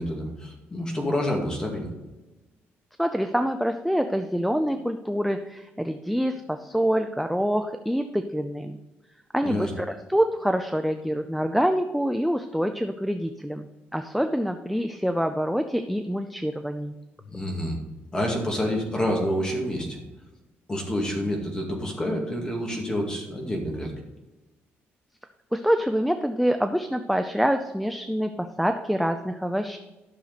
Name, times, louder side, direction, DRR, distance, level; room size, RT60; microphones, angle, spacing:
voice 1, 0.0-1.9 9.4-9.7 17.3-17.8 18.1-20.0 20.7-23.9, equal, 15° left, 1 dB, 2.1 m, -28 dB
voice 2, 3.0-8.8 9.3-13.7 13.9-16.9 25.5-29.8, equal, ahead, 6 dB, 0.4 m, -26 dB
12.5 x 6.5 x 4.1 m, 1.1 s
cardioid pair, 150°, 4 cm